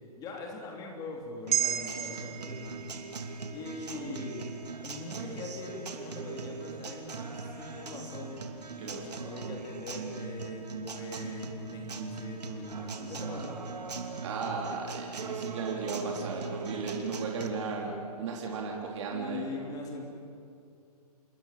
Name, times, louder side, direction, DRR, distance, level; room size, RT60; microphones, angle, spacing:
voice 1, 0.2-2.8 3.5-4.5 4.8-8.3 8.8-13.7 19.1-20.0, left 3 dB, 20° left, 1 dB, 3.6 m, -42 dB
sound 1, 1.5-6.0 6.4-6.5, right 10 dB, 65° right, 2.1 m, -36 dB
Acoustic guitar, 1.5-17.5, right 4 dB, 85° right, 3.0 m, -40 dB
voice 2, 8.8-9.1 14.2-19.5, right 4 dB, 45° right, -1 dB, 4.0 m, -35 dB
27.5 x 22.5 x 7.7 m, 2.4 s
hypercardioid pair, 150°, 20 cm